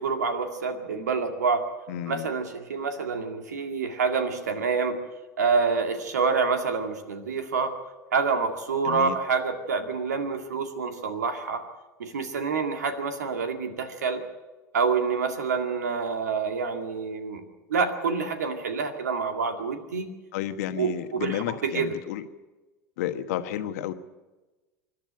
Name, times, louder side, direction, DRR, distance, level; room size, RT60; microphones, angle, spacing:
voice 1, 0.0-1.7 2.1-5.0 5.4-7.7 8.1-11.6 12.0-14.2 14.7-17.4 17.7-20.1 20.8-21.9, right 5 dB, 80° right, 6 dB, 2.1 m, -27 dB
voice 2, 1.9-2.3 8.8-9.2 20.3-22.2 23.0-23.9, left 11 dB, 65° left, 10 dB, 1.3 m, -31 dB
25.5 x 11.5 x 8.7 m, 1.2 s
hypercardioid pair, 80°, 9 cm